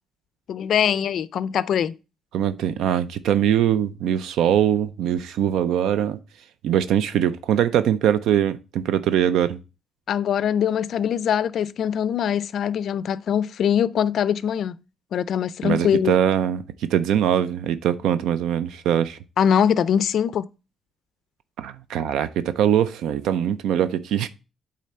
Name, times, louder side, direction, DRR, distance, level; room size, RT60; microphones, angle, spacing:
voice 1, 0.5-2.0 10.1-14.7 15.1-16.2 19.4-20.5, left 8 dB, 60° left, 0.4 m, -22 dB
voice 2, 2.3-6.2 6.6-9.6 15.6-16.6 16.9-19.2 21.6-24.3, right 10 dB, 90° right, 0.4 m, -22 dB
8.4 x 3.8 x 4.3 m
cardioid pair, 135°, 0 cm